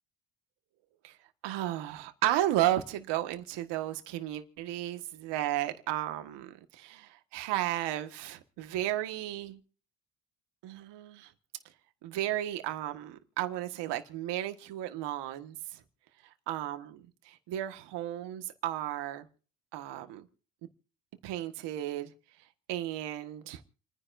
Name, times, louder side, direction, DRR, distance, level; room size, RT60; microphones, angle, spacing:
voice 1, 1.4-9.6 10.6-11.3 12.0-15.8 16.5-19.3 19.7-20.2 21.2-22.1 22.7-23.6, right 13 dB, 80° right, 8 dB, 1.6 m, -33 dB
28.5 x 10.0 x 2.6 m, 0.41 s
supercardioid pair, 80°, 41 cm